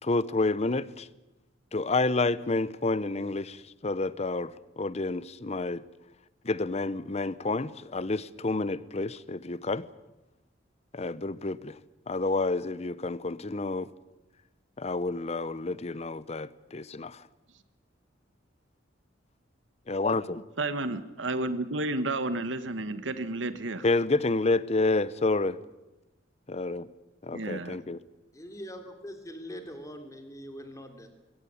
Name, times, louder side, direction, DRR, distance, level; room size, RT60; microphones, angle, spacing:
voice 1, 0.0-1.1 1.7-5.8 6.4-9.8 10.9-11.8 12.1-13.9 14.8-17.2 19.9-20.4 23.8-25.6 26.5-26.9 27.2-28.0, left 3 dB, 35° left, 0.8 m, -29 dB
voice 2, 20.6-23.8 27.3-27.8, right 2 dB, 85° right, 1.3 m, -31 dB
voice 3, 28.3-31.1, equal, 15° left, 2.9 m, -42 dB
22.0 x 16.5 x 9.9 m
head